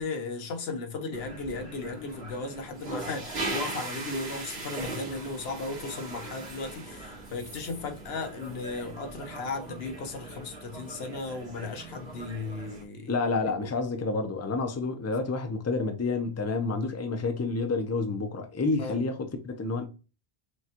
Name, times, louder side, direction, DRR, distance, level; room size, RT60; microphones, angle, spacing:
voice 1, 0.0-13.2 18.8-19.0, left 3 dB, 80° left, 1.1 m, -36 dB
sound 1, 1.1-12.8, right 3 dB, 80° right, 1.8 m, -40 dB
voice 2, 13.1-19.9, left 3 dB, 20° left, 0.4 m, -29 dB
6.1 x 2.3 x 2.9 m
omnidirectional pair, 1.0 m